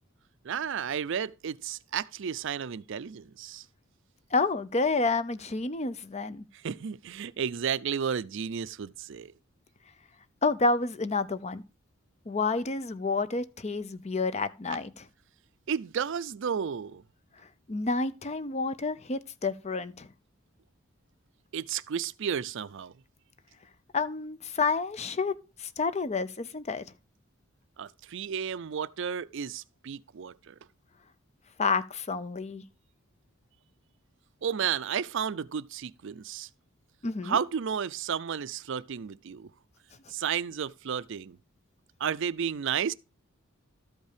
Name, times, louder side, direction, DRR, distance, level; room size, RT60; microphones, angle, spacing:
voice 1, 0.4-3.6 6.5-9.3 15.7-17.0 21.5-22.9 27.8-30.6 34.4-36.5 37.2-39.5 40.1-41.4 42.0-42.9, right 7 dB, 60° right, 0.4 m, -32 dB
voice 2, 4.3-6.4 10.4-11.6 12.3-15.1 17.7-20.1 23.9-26.8 31.6-32.6 37.0-37.4, left 3 dB, 30° left, 0.6 m, -29 dB
13.0 x 5.4 x 5.0 m
head